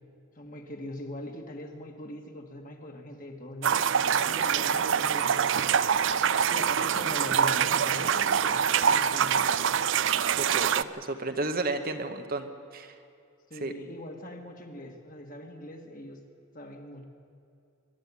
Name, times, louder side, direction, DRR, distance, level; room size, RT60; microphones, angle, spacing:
voice 1, 0.3-6.2 6.5-9.6 13.5-16.2 16.5-17.0, left 1 dB, 40° left, 3 dB, 2.0 m, -42 dB
sound 1, 3.6-10.8, right 7 dB, 65° right, 0.5 m, -25 dB
voice 2, 8.9-9.3 10.4-13.0 13.6-13.7, right 2 dB, 45° right, 7 dB, 1.2 m, -33 dB
23.0 x 12.0 x 9.9 m, 2.4 s
head